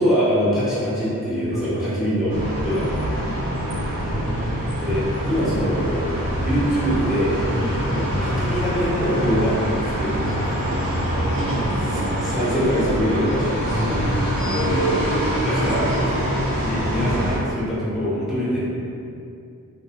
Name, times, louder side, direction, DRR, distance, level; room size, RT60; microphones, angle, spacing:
voice 1, 0.0-3.0 4.8-7.4 7.9-10.4 11.9-13.9 14.4-18.7, equal, ahead, -10 dB, 1.0 m, -24 dB
voice 2, 1.5-2.0 3.2-4.7 7.5-7.8 11.2-12.0 13.7-14.5, right 1 dB, 45° right, -8 dB, 0.5 m, -29 dB
sound 1, 2.3-17.4, equal, 85° right, 1.0 m, -24 dB
2.6 x 2.1 x 2.8 m, 2.5 s
cardioid pair, 60°, 33 cm